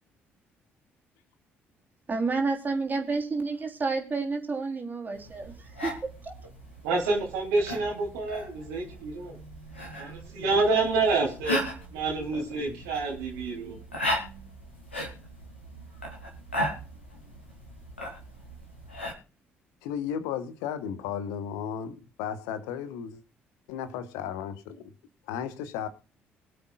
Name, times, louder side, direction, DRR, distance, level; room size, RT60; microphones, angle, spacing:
voice 1, 2.1-5.9 6.2-6.3, right 4 dB, 30° right, 3.4 m, -30 dB
sound 1, 5.1-19.1, equal, 90° left, 2.7 m, -37 dB
voice 2, 6.8-9.4 10.0-11.6 11.9-13.8, right 3 dB, 70° right, 3.2 m, -28 dB
voice 3, 12.3-12.8 19.8-23.2 23.7-24.9 25.3-25.9, left 8 dB, 70° left, 1.1 m, -35 dB
23.5 x 7.8 x 2.4 m
figure-of-eight pair, 45°, 6 cm